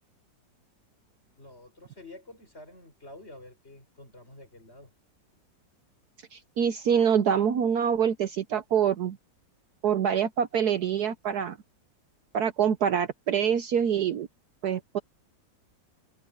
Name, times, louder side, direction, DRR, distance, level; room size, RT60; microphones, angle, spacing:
voice 1, 1.4-4.9, left 1 dB, 35° left, 5.9 m, -49 dB
voice 2, 6.3-9.2 9.8-11.6 12.3-14.3 14.6-15.0, right 8 dB, 65° right, 1.3 m, -25 dB
omnidirectional pair, 2.0 m